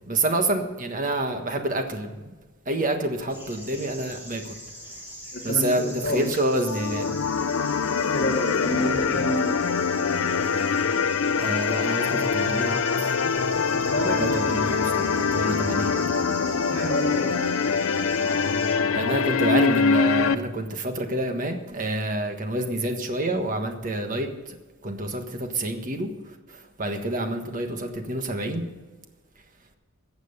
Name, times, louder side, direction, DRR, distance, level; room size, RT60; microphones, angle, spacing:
voice 1, 0.1-2.2 2.7-4.6 5.4-7.1 8.0-8.1 11.4-13.1 14.1-15.9 18.9-24.5 24.8-26.1 26.5-28.6, right 1 dB, 35° right, 5 dB, 1.4 m, -28 dB
sound 1, 3.3-18.8, equal, 10° right, 3.6 m, -40 dB
voice 2, 5.3-6.3 8.1-9.5 13.8-14.8 16.7-17.6, left 1 dB, 45° left, 1 dB, 1.4 m, -28 dB
sound 2, 6.6-20.3, left 5 dB, 65° left, 0.5 m, -24 dB
14.5 x 8.0 x 6.8 m, 1.2 s
head